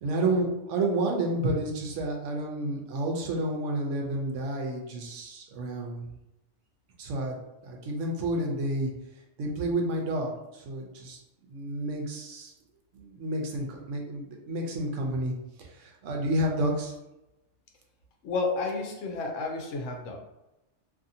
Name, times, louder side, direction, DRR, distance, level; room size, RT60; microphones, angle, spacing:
voice 1, 0.0-6.0 7.0-7.4 7.6-8.9 9.4-11.2 11.5-12.5 12.9-15.3 15.6-16.9, right 1 dB, 80° right, 1 dB, 1.0 m, -30 dB
voice 2, 18.2-20.2, left 3 dB, 85° left, 2 dB, 1.0 m, -31 dB
2.7 x 2.6 x 2.6 m, 0.94 s
omnidirectional pair, 1.3 m